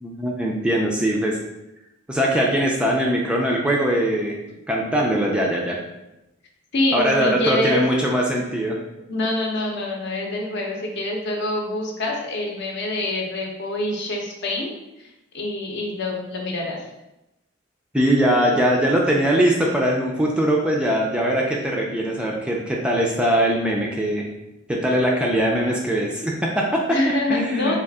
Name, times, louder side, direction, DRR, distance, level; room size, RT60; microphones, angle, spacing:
voice 1, 0.0-1.4 2.1-4.3 4.7-5.8 6.9-8.8 17.9-24.3 24.7-27.0 27.3-27.8, right 1 dB, 5° right, -2 dB, 0.3 m, -21 dB
voice 2, 6.7-7.9 9.1-14.7 15.3-16.8 26.9-27.8, left 2 dB, 55° left, 0 dB, 0.7 m, -25 dB
3.6 x 2.3 x 3.5 m, 0.94 s
head